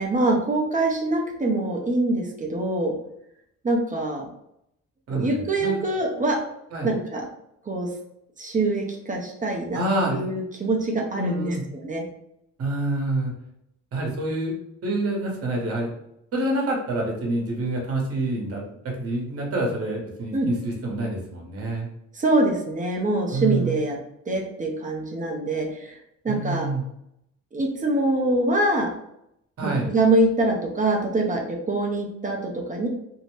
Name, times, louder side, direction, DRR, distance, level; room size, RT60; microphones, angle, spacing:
voice 1, 0.0-2.9 3.6-4.2 5.1-6.4 6.8-7.2 7.7-7.9 8.4-9.8 10.1-12.0 20.3-20.5 22.1-24.0 24.3-26.0 26.2-26.7 27.5-28.9 29.6-32.9, right 2 dB, 25° right, 0 dB, 0.6 m, -24 dB
voice 2, 5.1-5.8 6.7-6.9 9.7-10.3 11.1-11.6 12.6-13.3 13.9-14.5 14.8-15.9 16.3-21.9 23.3-23.8 26.3-26.8 29.6-29.9, right 2 dB, 50° right, -1 dB, 1.0 m, -27 dB
2.7 x 2.1 x 3.1 m, 0.78 s
cardioid pair, 90°, 30 cm